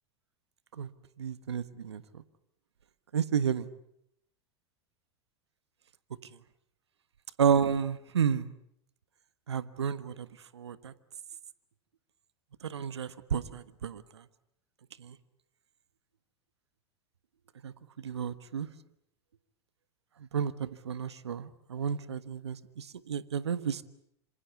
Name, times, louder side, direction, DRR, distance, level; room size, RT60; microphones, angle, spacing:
voice 1, 1.2-2.0 3.1-3.7 7.4-8.5 9.5-10.3 10.5-10.9 12.6-14.0 15.0-15.1 17.6-17.7 18.0-18.7 20.3-23.8, right 7 dB, 85° right, 14 dB, 1.4 m, -31 dB
27.5 x 26.0 x 8.3 m, 0.73 s
hypercardioid pair, 90°, 14 cm